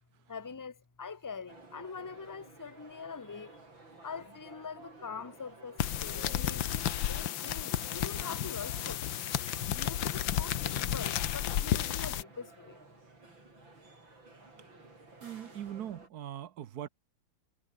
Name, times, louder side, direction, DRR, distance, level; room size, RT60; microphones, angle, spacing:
voice 1, 0.3-3.6 4.0-6.7 7.1-9.1 9.7-12.8 15.4-15.9, left 5 dB, 20° left, 0.6 m, -44 dB
sound 1, 1.5-16.1, right 3 dB, 85° right, 6.9 m, -54 dB
sound 2, 5.8-12.2, left 11 dB, 80° left, 1.8 m, -32 dB
voice 2, 15.2-16.9, right 10 dB, 60° right, 1.3 m, -41 dB
omnidirectional pair, 2.0 m